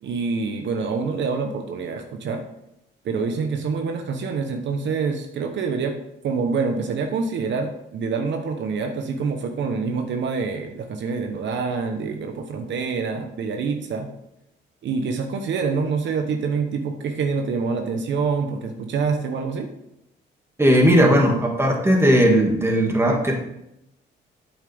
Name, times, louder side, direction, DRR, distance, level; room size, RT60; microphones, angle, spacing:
voice 1, 0.0-2.4 3.0-5.9 6.2-14.1 14.8-19.7, right 5 dB, 65° right, 5 dB, 1.0 m, -26 dB
voice 2, 20.6-23.3, equal, 10° right, 0 dB, 2.1 m, -17 dB
8.9 x 7.3 x 3.5 m, 0.84 s
cardioid pair, 90°, 20 cm